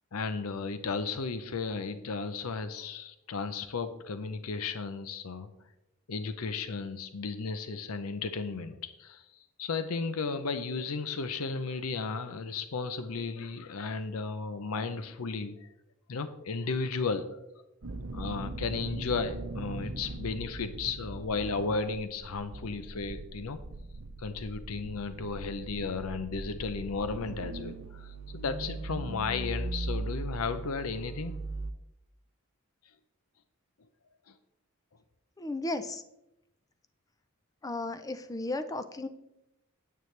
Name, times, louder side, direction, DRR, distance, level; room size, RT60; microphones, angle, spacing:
voice 1, 0.1-5.5 6.1-15.7 16.1-17.3 18.1-23.6 24.2-31.4 34.3-34.4, left 4 dB, 85° left, 11 dB, 0.6 m, -34 dB
sound 1, 17.8-31.7, right 2 dB, 70° right, 0.7 m, -39 dB
voice 2, 35.4-36.0 37.6-39.1, left 2 dB, 15° left, 9 dB, 0.5 m, -34 dB
9.3 x 8.8 x 3.2 m, 0.87 s
head